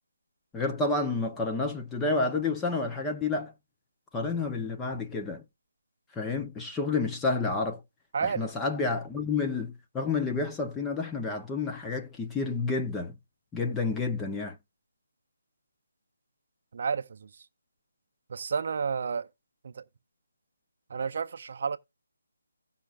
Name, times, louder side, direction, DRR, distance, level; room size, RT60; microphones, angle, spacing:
voice 1, 0.5-3.5 4.1-5.4 6.1-7.8 8.2-13.2 13.5-14.6, left 3 dB, 5° left, 0.7 m, -30 dB
voice 2, 8.1-8.5 16.7-17.1 18.3-19.3 19.8-19.9 20.9-21.8, right 6 dB, 45° right, 0.6 m, -30 dB
16.5 x 5.5 x 2.5 m
hypercardioid pair, 170°, 0 cm